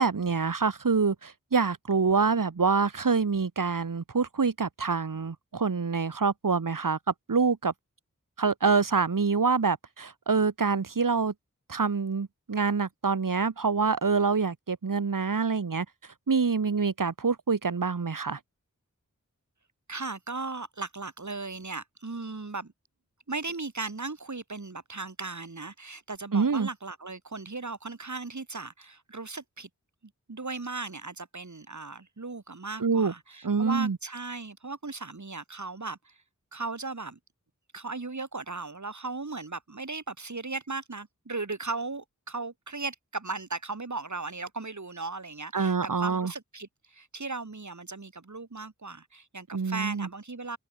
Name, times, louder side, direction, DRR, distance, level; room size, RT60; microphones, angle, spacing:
voice 1, 0.0-7.0 7.3-7.7 8.4-11.3 11.7-15.9 16.3-18.4 26.3-26.7 32.8-33.1 33.4-34.0 45.5-46.3 49.5-50.1, right 5 dB, 85° right, 2.3 m, -26 dB
voice 2, 19.9-22.7 23.3-29.7 30.3-36.2 36.5-37.2 37.7-50.6, right 3 dB, 65° right, 7.8 m, -37 dB
wide cardioid pair, 65°, 32 cm